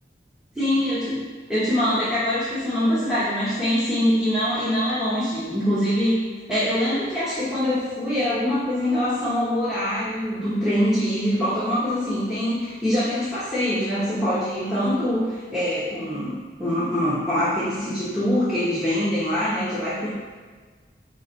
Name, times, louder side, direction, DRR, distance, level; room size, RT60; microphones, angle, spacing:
voice 1, 0.5-6.2 6.5-20.1, equal, 5° right, -12 dB, 0.8 m, -24 dB
4.7 x 2.5 x 3.9 m, 1.5 s
head